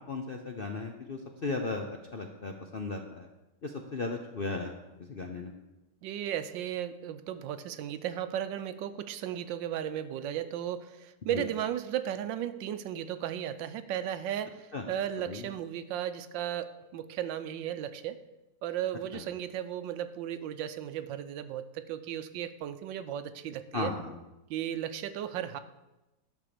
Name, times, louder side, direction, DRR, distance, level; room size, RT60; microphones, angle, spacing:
voice 1, 0.1-1.9 2.1-3.3 3.6-4.7 5.1-5.5 11.3-11.4 14.7-14.9 15.3-15.5 19.1-19.2 23.7-24.2, left 3 dB, 55° left, 3 dB, 0.6 m, -36 dB
voice 2, 6.0-18.2 18.6-23.9 24.5-25.6, right 10 dB, 90° right, 12 dB, 1.4 m, -35 dB
11.0 x 5.7 x 6.8 m, 1.0 s
omnidirectional pair, 2.0 m